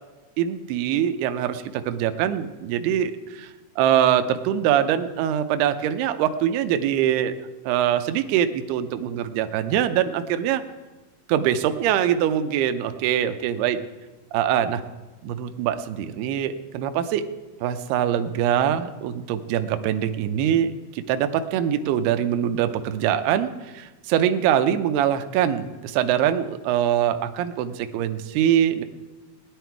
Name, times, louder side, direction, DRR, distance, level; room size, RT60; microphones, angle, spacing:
voice 1, 0.4-7.3 7.7-10.6 11.3-13.8 14.3-14.8 15.2-17.2 17.6-28.8, right 10 dB, 80° right, 9 dB, 2.7 m, -23 dB
18.5 x 11.0 x 4.6 m, 1.2 s
omnidirectional pair, 4.6 m